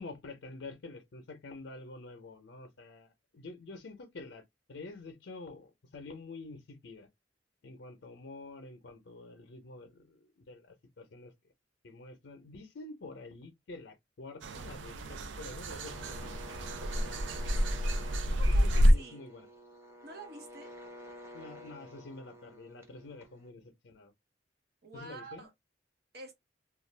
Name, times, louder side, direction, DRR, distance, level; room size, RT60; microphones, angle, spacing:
voice 1, 0.0-7.1 7.6-11.3 11.8-16.4 17.0-17.2 17.5-17.6 18.4-19.5 21.3-24.1 24.9-25.5, left 3 dB, 75° left, 0.6 m, -48 dB
sound 1, 14.4-18.9, equal, 80° right, 0.4 m, -28 dB
sound 2, 15.7-23.5, equal, 15° right, 0.7 m, -50 dB
voice 2, 17.2-17.8 18.3-19.2 20.0-20.7 24.8-25.5 26.1-26.3, right 3 dB, 60° right, 1.0 m, -48 dB
2.4 x 2.3 x 3.2 m
head